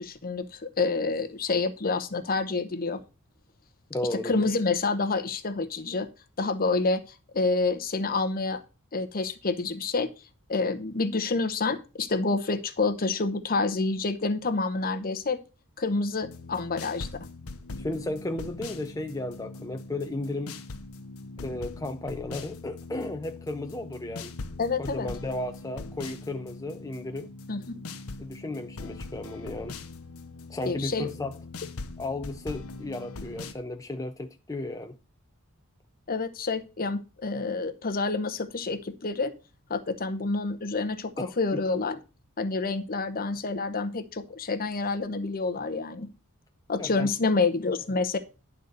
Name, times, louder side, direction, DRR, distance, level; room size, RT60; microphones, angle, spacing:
voice 1, 0.0-3.0 4.2-6.1 6.4-7.0 7.3-8.6 8.9-10.1 10.5-15.4 15.8-17.1 24.6-25.1 27.5-27.8 30.7-31.1 36.1-39.3 39.7-42.0 42.4-46.1 46.7-48.2, left 3 dB, 40° left, 0.8 m, -28 dB
voice 2, 3.9-4.4 17.8-20.5 21.4-24.3 24.8-27.3 28.2-29.8 30.5-31.4 32.0-35.0 41.2-41.6 46.8-47.1, left 2 dB, 15° left, 0.5 m, -34 dB
sound 1, 16.2-33.5, left 3 dB, 70° left, 0.9 m, -41 dB
11.0 x 4.0 x 6.5 m
head